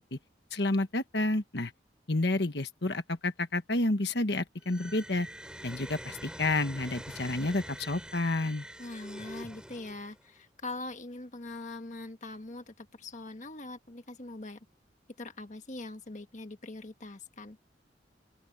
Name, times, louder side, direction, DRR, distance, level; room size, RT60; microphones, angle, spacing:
voice 1, 0.5-1.7 2.1-5.3 5.6-8.6, left 2 dB, 60° left, 1.4 m, -30 dB
sound 1, 4.6-10.3, equal, 5° right, 3.2 m, -45 dB
voice 2, 8.8-14.6 15.2-17.6, left 2 dB, 40° left, 1.4 m, -42 dB
open air
head